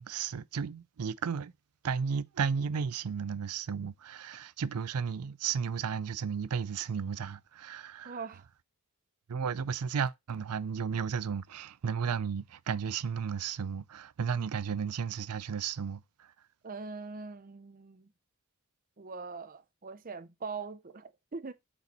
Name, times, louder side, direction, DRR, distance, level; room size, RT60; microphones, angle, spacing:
voice 1, 0.0-1.5 1.8-8.2 9.3-16.3, right 6 dB, 90° right, 0.5 m, -34 dB
voice 2, 8.0-8.5 16.6-18.1 19.0-21.5, right 4 dB, 40° right, 0.7 m, -42 dB
6.7 x 4.4 x 4.1 m
head